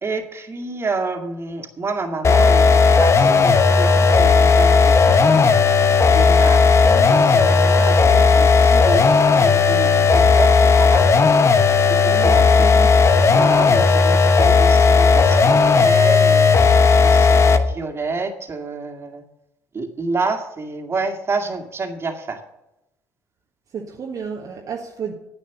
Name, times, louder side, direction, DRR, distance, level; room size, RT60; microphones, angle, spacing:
voice 1, 0.0-5.6 6.1-11.1 11.9-12.9 13.3-16.5 17.0-19.2 19.7-22.4, right 3 dB, 35° right, 4 dB, 2.2 m, -29 dB
sound 1, 2.2-17.7, left 4 dB, 40° left, 1.0 m, -14 dB
voice 2, 12.1-12.9 13.7-13.8 23.7-25.1, right 6 dB, 50° right, -1 dB, 1.5 m, -32 dB
9.9 x 8.9 x 7.2 m, 0.90 s
hypercardioid pair, 55°, 8 cm